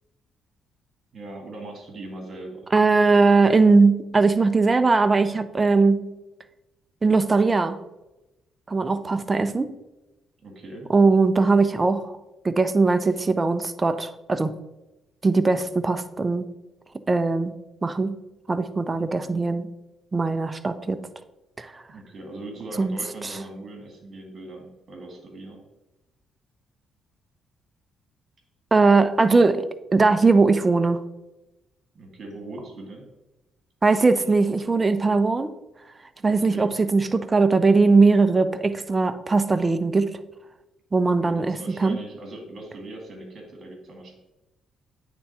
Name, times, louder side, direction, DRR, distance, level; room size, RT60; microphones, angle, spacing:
voice 1, 1.1-2.7 9.3-9.5 10.4-10.9 18.9-19.3 21.9-25.6 32.0-33.0 36.2-36.8 41.2-44.1, right 2 dB, 50° right, 2 dB, 1.8 m, -40 dB
voice 2, 2.7-6.0 7.0-7.8 8.7-9.7 10.9-12.1 12.4-14.5 15.2-16.4 17.1-17.5 17.8-18.2 18.5-19.7 20.1-21.0 21.6-21.7 22.8-23.0 28.7-29.7 29.9-31.0 33.8-35.5 36.2-40.2 40.9-42.0, right 3 dB, 25° right, 11 dB, 0.4 m, -20 dB
8.9 x 3.5 x 4.1 m, 1.0 s
cardioid pair, 90°, 0 cm